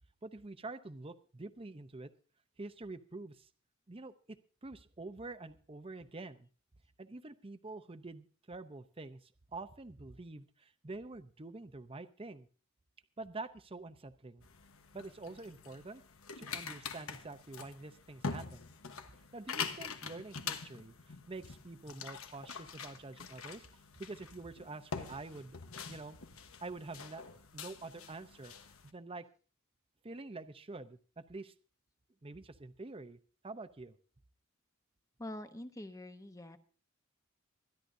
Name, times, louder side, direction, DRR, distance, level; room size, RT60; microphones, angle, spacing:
voice 1, 0.2-2.1 2.6-3.5 3.9-4.4 4.6-6.5 7.0-12.5 13.2-14.4 14.9-16.0 16.4-18.7 19.3-23.7 24.0-25.6 25.9-26.2 26.6-27.2 27.5-29.2 30.0-31.5 32.2-33.2 33.4-34.0, right 3 dB, 25° right, 10 dB, 0.7 m, -47 dB
sound 1, 14.4-28.9, left 5 dB, 85° left, 1.2 m, -45 dB
voice 2, 35.2-36.6, left 1 dB, 15° left, 9 dB, 0.9 m, -45 dB
24.5 x 10.5 x 2.7 m, 0.38 s
head